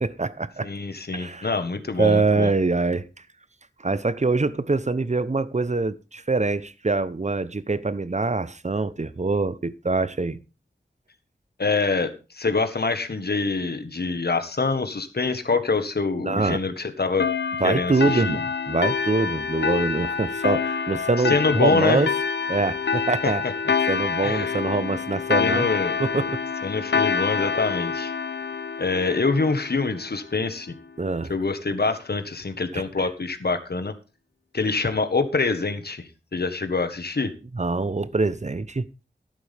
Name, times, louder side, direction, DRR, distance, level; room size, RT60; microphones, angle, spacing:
voice 1, 0.0-0.7 1.1-1.5 2.0-3.1 3.8-10.4 16.2-16.6 17.6-22.1 22.5-23.4 23.9-25.7 26.0-26.4 31.0-31.3 32.7-33.1 37.5-38.9, right 3 dB, 40° right, 0.9 m, -24 dB
voice 2, 0.6-2.5 11.6-17.3 17.6-18.3 21.3-22.0 23.2-23.5 24.2-24.6 25.4-26.0 26.6-28.1 28.8-30.7 31.3-33.9 34.5-36.0 36.3-37.3, left 4 dB, 65° left, 1.5 m, -25 dB
sound 1, 17.2-30.3, left 5 dB, 80° left, 0.7 m, -27 dB
13.0 x 11.5 x 3.5 m
wide cardioid pair, 70°, 18 cm